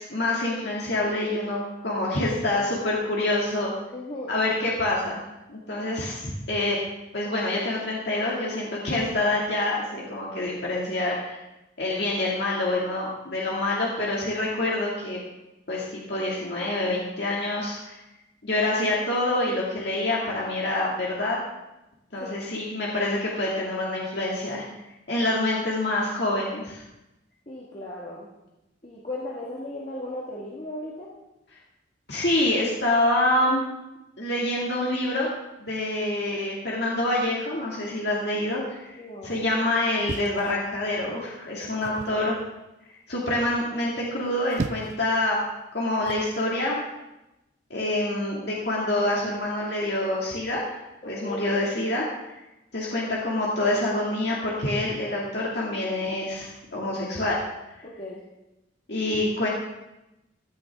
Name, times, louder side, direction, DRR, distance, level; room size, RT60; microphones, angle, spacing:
voice 1, 0.0-3.7 4.3-6.8 7.1-11.4 11.8-15.2 15.7-18.0 18.4-21.4 22.1-24.6 25.1-26.8 32.1-33.6 34.2-35.3 35.6-42.3 43.1-45.4 45.7-46.8 47.7-50.8 51.1-52.1 52.7-57.4 58.9-59.5, left 1 dB, 60° left, -4 dB, 2.2 m, -26 dB
voice 2, 3.9-4.3 22.2-22.3 27.5-28.3 28.8-31.1 39.0-39.5 42.0-42.2 51.0-51.4 57.8-58.2, left 1 dB, 35° left, -5 dB, 1.6 m, -36 dB
sound 1, 40.0-41.1 41.8-42.2 44.2-45.1 46.0-46.3, right 3 dB, 40° right, 0.4 m, -35 dB
15.0 x 11.5 x 3.6 m, 0.95 s
head